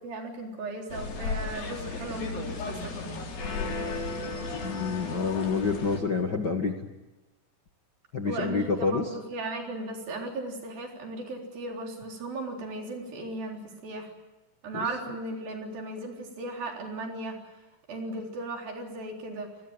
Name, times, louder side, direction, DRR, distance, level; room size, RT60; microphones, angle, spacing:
voice 1, 0.0-3.2 8.3-14.1 14.6-17.5 17.9-19.5, right 2 dB, 75° right, 2 dB, 5.7 m, -36 dB
sound 1, 0.9-6.0, left 3 dB, 70° left, 5.2 m, -34 dB
voice 2, 4.6-6.8 8.1-9.0, left 4 dB, 40° left, 3 dB, 1.6 m, -28 dB
29.0 x 19.5 x 9.0 m, 1.1 s
omnidirectional pair, 4.2 m